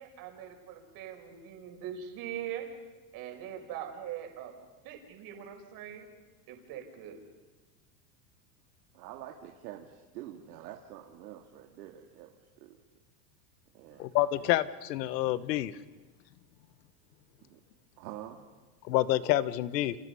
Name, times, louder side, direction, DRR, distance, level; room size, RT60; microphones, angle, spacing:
voice 1, 0.0-2.7 3.1-4.5 4.8-6.1 6.5-7.2, right 10 dB, 45° right, 3 dB, 5.5 m, -42 dB
voice 2, 8.9-12.3 12.6-12.8 13.7-14.1 14.4-14.6 17.5-17.6 18.0-18.4, right 12 dB, 75° right, 1 dB, 2.5 m, -46 dB
voice 3, 14.0-15.7 18.9-20.0, left 14 dB, 80° left, 15 dB, 1.3 m, -28 dB
30.0 x 27.5 x 5.6 m, 1.3 s
supercardioid pair, 145°, 49 cm